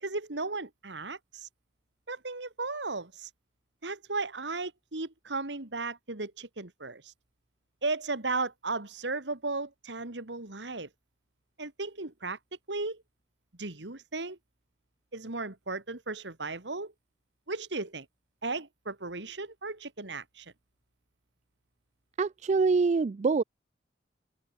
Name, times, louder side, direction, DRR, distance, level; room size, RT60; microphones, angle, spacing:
voice 1, 0.0-1.5 2.1-3.3 3.8-7.1 7.8-10.9 11.6-12.4 12.7-13.0 13.6-14.4 15.1-16.9 17.5-18.1 18.4-20.5, right 3 dB, 75° right, 2.4 m, -35 dB
voice 2, 22.2-23.4, right 4 dB, 40° right, 0.3 m, -25 dB
open air
head